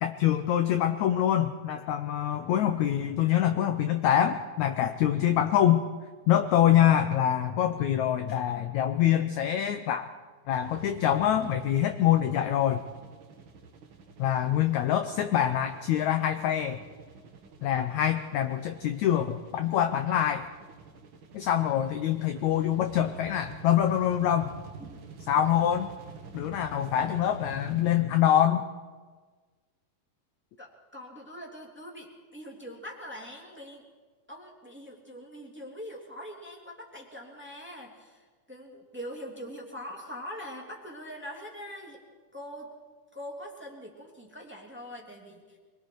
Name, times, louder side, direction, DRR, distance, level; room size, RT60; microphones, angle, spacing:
voice 1, 0.0-5.8 6.3-10.1 10.5-12.8 14.2-16.8 17.6-20.5 21.3-24.5 25.3-25.9 26.3-28.7, left 10 dB, 80° left, 7 dB, 1.6 m, -25 dB
sound 1, 10.6-28.0, right 4 dB, 60° right, 1.3 m, -48 dB
voice 2, 30.6-33.8 34.3-42.0 42.3-42.7 43.1-45.6, equal, 5° right, -1 dB, 2.2 m, -43 dB
25.0 x 22.5 x 4.7 m, 1.4 s
omnidirectional pair, 4.2 m